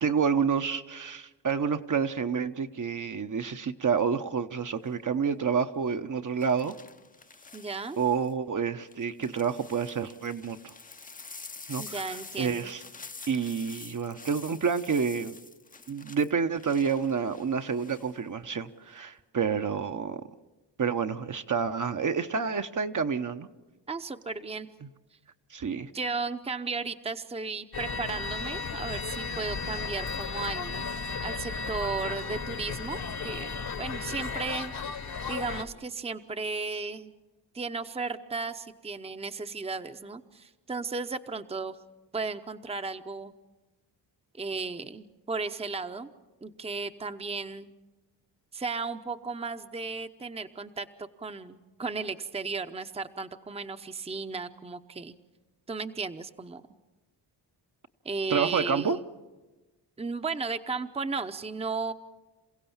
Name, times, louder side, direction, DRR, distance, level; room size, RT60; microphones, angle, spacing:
voice 1, 0.0-6.7 8.0-10.7 11.7-12.8 13.3-15.4 15.9-20.2 20.8-23.5 25.5-25.9 58.3-59.0, right 6 dB, 45° right, 7 dB, 0.9 m, -29 dB
sound 1, 4.8-5.1 6.4-8.3 8.9-18.1 18.5-19.0, left 4 dB, 20° left, 0.7 m, -47 dB
voice 2, 7.5-8.0 11.8-12.7 23.9-24.7 25.9-30.9 31.2-34.7 35.3-37.1 37.5-41.8 42.1-43.3 44.4-46.1 46.4-47.8 48.5-55.1 55.7-56.6 58.0-59.0 60.0-61.9, right 4 dB, 15° right, 9 dB, 0.8 m, -35 dB
sound 2, 27.7-35.6, left 4 dB, 60° left, 1.4 m, -34 dB
28.0 x 16.0 x 7.2 m, 1.1 s
cardioid pair, 90°, 42 cm